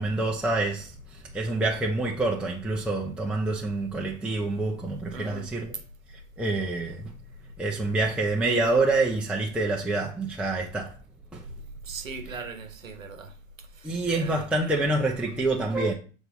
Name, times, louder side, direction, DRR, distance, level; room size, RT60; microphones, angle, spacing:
voice 1, 0.0-5.7 6.4-7.1 7.6-10.9 11.3-11.4 12.2-12.5 13.8-15.9, right 2 dB, 5° right, 0.7 m, -27 dB
voice 2, 5.1-5.5 11.9-13.3 13.8-14.5, right 4 dB, 85° right, 1.4 m, -39 dB
6.8 x 3.6 x 4.1 m
hypercardioid pair, 95°, 39 cm